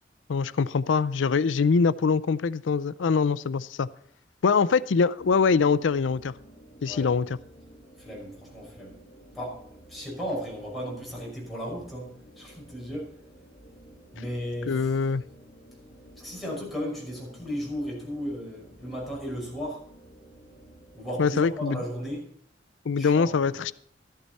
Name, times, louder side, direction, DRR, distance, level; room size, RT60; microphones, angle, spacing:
voice 1, 0.3-3.9 4.4-6.3 6.8-7.2 14.7-15.2 21.2-21.8 22.9-23.7, left 5 dB, 80° left, 17 dB, 0.5 m, -23 dB
sound 1, 5.2-21.4, right 1 dB, 35° left, 4.2 m, -52 dB
voice 2, 6.8-7.1 8.0-9.0 9.3-13.2 14.1-15.0 16.2-19.9 20.9-22.3 23.0-23.6, equal, ahead, -4 dB, 5.7 m, -35 dB
13.0 x 11.5 x 4.1 m, 0.65 s
head